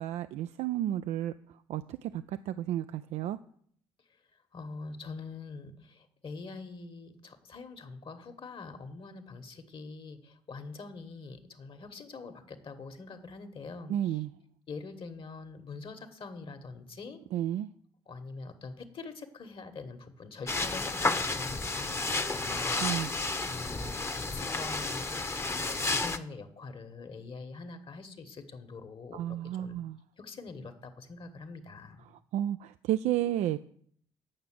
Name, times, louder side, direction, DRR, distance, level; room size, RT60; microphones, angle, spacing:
voice 1, 0.0-1.3 1.7-3.4 13.9-14.3 17.3-17.7 22.8-23.1 29.1-30.0 32.1-33.6, right 12 dB, 70° right, 12 dB, 0.4 m, -32 dB
voice 2, 4.5-14.2 14.7-17.2 18.1-23.1 23.4-29.8 30.2-32.1, left 4 dB, 45° left, 9 dB, 1.5 m, -44 dB
sound 1, 20.5-26.2, left 3 dB, 20° left, 0.9 m, -31 dB
8.7 x 5.9 x 7.5 m, 0.62 s
hypercardioid pair, 50°, 12 cm